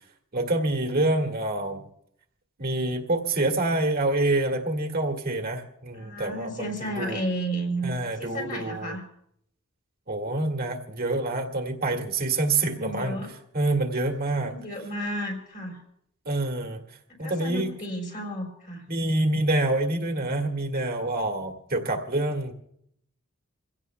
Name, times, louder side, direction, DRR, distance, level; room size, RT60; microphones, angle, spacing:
voice 1, 0.3-1.8 2.6-6.7 7.0-7.2 7.8-8.9 10.1-13.2 13.5-14.5 16.2-16.8 17.2-17.7 18.9-22.5, right 2 dB, 45° right, 2 dB, 1.8 m, -26 dB
voice 2, 5.9-9.0 12.6-13.3 14.3-15.8 17.1-18.8, right 1 dB, 40° left, 1 dB, 3.8 m, -33 dB
28.0 x 16.5 x 2.2 m, 0.71 s
head